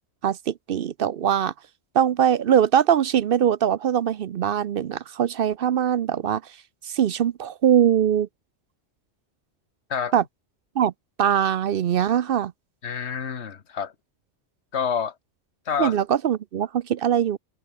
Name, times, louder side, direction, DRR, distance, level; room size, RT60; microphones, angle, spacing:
voice 1, 0.2-1.5 1.9-6.4 6.9-8.3 10.1-10.2 10.8-10.9 11.2-12.5 15.8-17.4, right 9 dB, 60° right, 0.7 m, -22 dB
voice 2, 12.8-13.9 14.7-15.1 15.7-16.0, left 7 dB, 65° left, 1.6 m, -28 dB
omnidirectional pair, 1.2 m